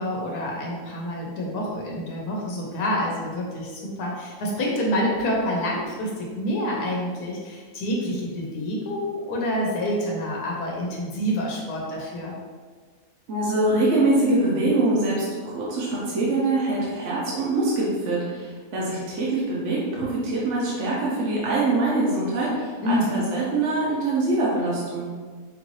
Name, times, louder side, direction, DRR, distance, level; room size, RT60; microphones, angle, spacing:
voice 1, 0.0-12.3 22.8-23.3, equal, 85° left, -2 dB, 1.3 m, -27 dB
voice 2, 13.3-25.1, right 2 dB, 55° right, -6 dB, 1.1 m, -24 dB
5.3 x 2.6 x 3.1 m, 1.5 s
omnidirectional pair, 1.6 m